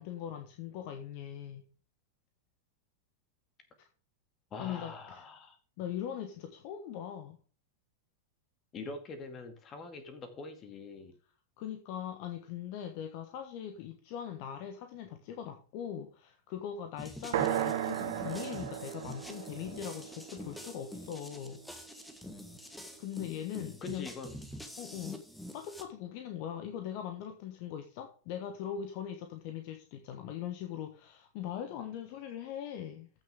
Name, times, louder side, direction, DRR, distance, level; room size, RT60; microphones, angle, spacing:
voice 1, 0.0-1.7 4.6-5.2 5.8-7.4 11.6-21.6 23.0-24.1 24.8-25.2 25.5-33.1, left 9 dB, 45° left, 7 dB, 1.2 m, -41 dB
voice 2, 4.5-5.6 8.7-11.1 23.8-24.4 24.9-25.0, left 3 dB, 30° left, 7 dB, 2.3 m, -44 dB
sound 1, 17.0-25.8, left 1 dB, 5° left, 1.5 m, -46 dB
sound 2, 17.3-21.3, right 11 dB, 55° right, 1.3 m, -35 dB
14.5 x 6.4 x 3.6 m, 0.38 s
figure-of-eight pair, 90°, 0 cm